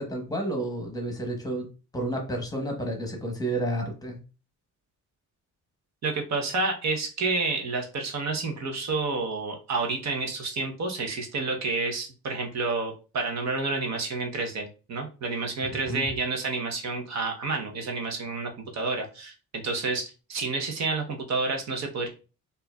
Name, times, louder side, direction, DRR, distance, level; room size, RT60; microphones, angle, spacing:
voice 1, 0.0-1.7 1.9-4.2 15.9-16.0, right 1 dB, 10° left, 1 dB, 1.0 m, -30 dB
voice 2, 6.0-22.1, right 3 dB, 55° right, 3 dB, 0.9 m, -29 dB
4.4 x 2.6 x 2.3 m, 0.33 s
cardioid pair, 95°, 32 cm